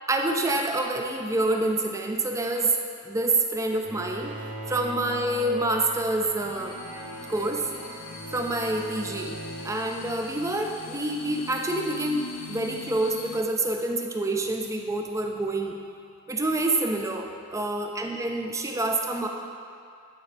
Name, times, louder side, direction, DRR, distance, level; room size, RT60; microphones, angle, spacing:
voice 1, 0.1-2.7 3.1-4.3 4.7-6.8 7.3-7.7 8.3-9.4 9.6-15.8 16.3-19.3, right 2 dB, 15° right, 2 dB, 0.4 m, -27 dB
Bowed string instrument, 3.8-10.6, equal, 60° right, 1.1 m, -40 dB
sound 1, 6.4-13.4, left 4 dB, 60° left, 0.5 m, -42 dB
8.9 x 3.9 x 3.4 m, 2.4 s
head